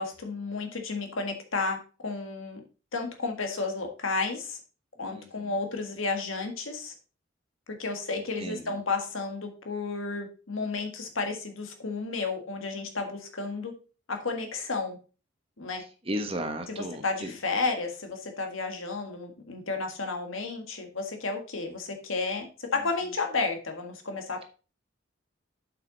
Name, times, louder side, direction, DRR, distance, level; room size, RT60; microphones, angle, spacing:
voice 1, 0.0-2.6 2.9-4.6 5.0-6.9 7.7-13.7 14.1-15.0 15.6-15.8 16.7-24.4, left 3 dB, 80° left, 4 dB, 1.7 m, -32 dB
voice 2, 5.0-5.5 8.1-8.7 16.1-17.3, equal, 25° right, 6 dB, 1.1 m, -35 dB
7.8 x 6.0 x 4.0 m, 0.35 s
head